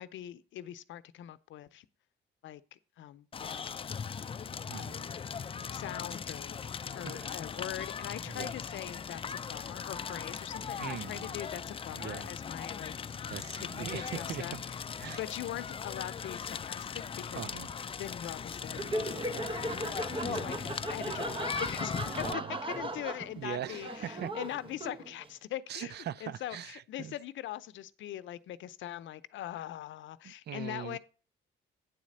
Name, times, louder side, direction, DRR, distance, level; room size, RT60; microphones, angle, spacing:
voice 1, 0.0-1.9 2.4-3.8 4.8-5.1 5.7-13.2 13.8-14.6 15.2-17.4 18.0-19.2 19.6-25.9 26.2-31.0, left 12 dB, 75° left, 0.6 m, -42 dB
Crackle, 3.3-22.3, left 6 dB, 30° left, 0.4 m, -39 dB
voice 2, 4.7-5.0 7.0-7.3 8.3-8.5 10.8-11.3 11.9-12.3 13.3-14.6 15.0-15.2 17.3-17.7 20.2-20.5 22.1-22.6 23.4-24.3 25.7-27.1 30.2-31.0, right 10 dB, 60° right, 0.5 m, -41 dB
Laughter, 18.7-25.3, right 1 dB, 25° right, 0.8 m, -37 dB
9.3 x 4.1 x 6.4 m
cardioid pair, 90°, 20 cm